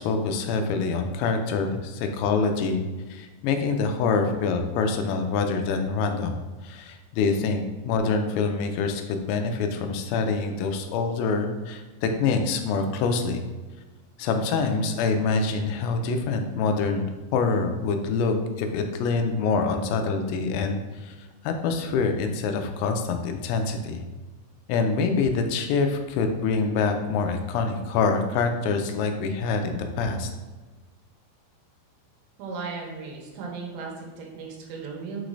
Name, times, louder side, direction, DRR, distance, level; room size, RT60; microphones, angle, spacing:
voice 1, 0.0-2.8 3.1-13.4 14.2-21.2 21.4-24.0 24.7-30.3, left 4 dB, 90° left, 5 dB, 2.9 m, -25 dB
voice 2, 32.4-35.2, right 4 dB, 85° right, -1 dB, 3.0 m, -36 dB
6.7 x 3.1 x 2.5 m, 1.2 s
omnidirectional pair, 5.2 m